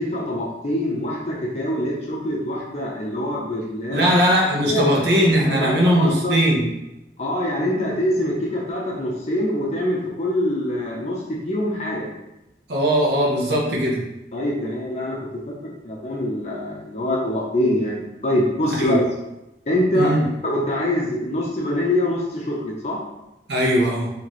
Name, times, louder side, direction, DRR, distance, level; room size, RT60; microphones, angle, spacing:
voice 1, 0.0-4.2 4.5-4.9 5.4-6.3 7.2-12.1 14.3-19.0 19.7-20.1 20.4-23.0, left 1 dB, 40° left, -3 dB, 0.6 m, -24 dB
voice 2, 3.9-6.7 12.7-14.0 18.7-19.0 19.9-20.2 23.5-24.1, equal, 80° right, -3 dB, 1.0 m, -19 dB
4.4 x 2.9 x 3.0 m, 0.92 s
head